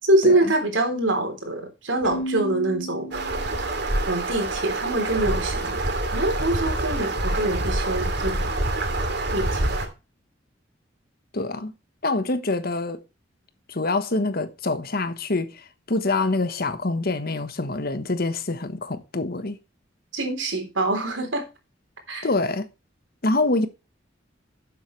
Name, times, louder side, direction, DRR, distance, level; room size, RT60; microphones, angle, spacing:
voice 1, 0.0-3.1 4.1-5.8 6.1-8.5 9.3-9.6 20.1-21.5 22.1-22.3, right 2 dB, 85° right, 3.7 m, -24 dB
Keyboard (musical), 2.0-3.9, right 1 dB, ahead, 3.0 m, -34 dB
sound 1, 3.1-9.9, right 2 dB, 60° right, 2.7 m, -26 dB
voice 2, 11.3-11.7 12.0-13.0 13.7-19.6 22.2-22.7 23.2-23.7, left 2 dB, 55° left, 1.3 m, -25 dB
11.5 x 8.0 x 3.3 m
head